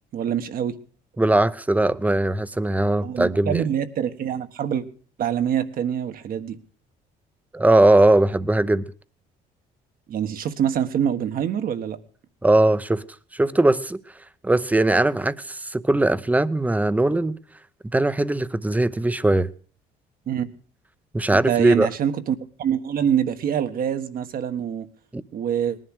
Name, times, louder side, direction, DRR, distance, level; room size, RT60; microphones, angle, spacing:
voice 1, 0.1-0.8 3.0-4.8 5.2-6.6 10.1-12.0 20.3-20.5 21.3-24.9 25.3-25.8, right 9 dB, 60° right, 1.4 m, -25 dB
voice 2, 1.2-3.6 7.5-8.8 12.4-13.0 13.3-14.0 14.4-17.4 17.9-19.5 21.1-21.9 25.1-25.2, right 2 dB, 10° right, 0.7 m, -20 dB
19.5 x 11.0 x 6.4 m
cardioid pair, 110°, 17 cm